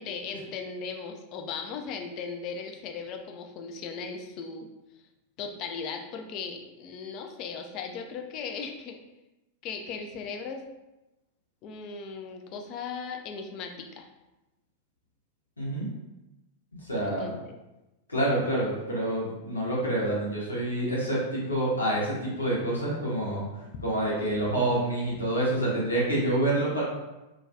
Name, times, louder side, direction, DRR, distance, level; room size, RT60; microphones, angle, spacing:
voice 1, 0.0-4.7 5.4-9.0 9.6-10.6 11.6-14.1 17.0-17.6 23.7-23.8, left 5 dB, 40° left, 4 dB, 0.3 m, -37 dB
voice 2, 15.6-15.9 16.8-17.3 18.1-23.5 23.8-26.8, right 1 dB, 80° left, -6 dB, 0.7 m, -27 dB
2.3 x 2.2 x 2.5 m, 1.0 s
figure-of-eight pair, 90°, 0 cm